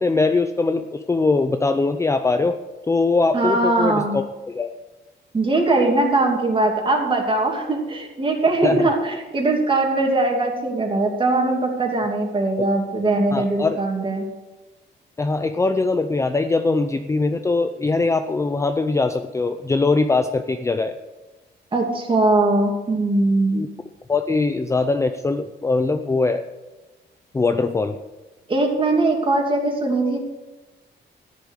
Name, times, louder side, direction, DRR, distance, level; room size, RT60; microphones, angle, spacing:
voice 1, 0.0-2.6 2.9-4.7 8.6-8.9 13.3-13.8 15.2-21.0 23.5-23.7 24.1-26.4 27.3-28.0, left 3 dB, 15° left, 8 dB, 0.5 m, -21 dB
voice 2, 3.3-4.2 5.3-14.3 21.7-23.6 28.5-30.2, right 2 dB, 25° right, 1 dB, 2.8 m, -20 dB
14.0 x 10.5 x 6.5 m, 1.1 s
wide cardioid pair, 155°, 19 cm